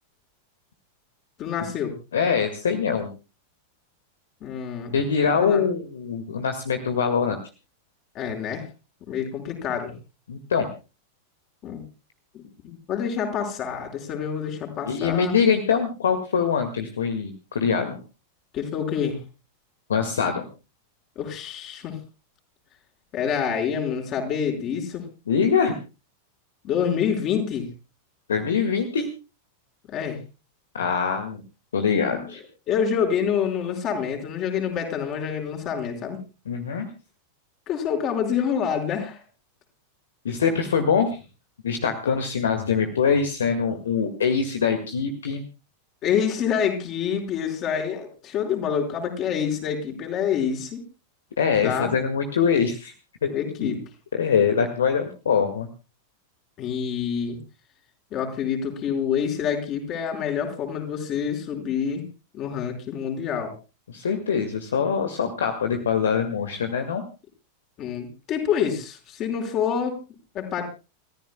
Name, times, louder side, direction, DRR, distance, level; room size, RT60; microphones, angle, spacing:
voice 1, 1.4-1.9 4.4-5.0 5.4-5.6 8.1-8.6 9.1-9.9 11.6-11.9 12.3-15.3 18.5-19.2 21.1-22.0 23.1-25.0 26.6-27.7 29.9-30.2 32.1-32.3 32.7-36.2 37.7-39.2 46.0-50.8 51.5-51.9 53.3-53.8 56.6-57.4 58.1-62.0 62.3-63.5 67.8-69.9 70.3-70.6, left 7 dB, 35° left, 3 dB, 5.0 m, -27 dB
voice 2, 2.1-3.1 4.9-7.4 10.3-10.7 14.9-18.0 19.9-20.5 25.3-25.8 28.3-29.1 30.7-31.4 31.7-32.4 36.5-36.9 40.2-41.2 41.6-45.5 51.4-52.9 53.2-53.3 53.6-53.8 54.1-55.7 63.9-67.0, left 6 dB, 65° left, 7 dB, 1.9 m, -23 dB
30.0 x 14.5 x 2.2 m, 0.31 s
figure-of-eight pair, 90°, 0 cm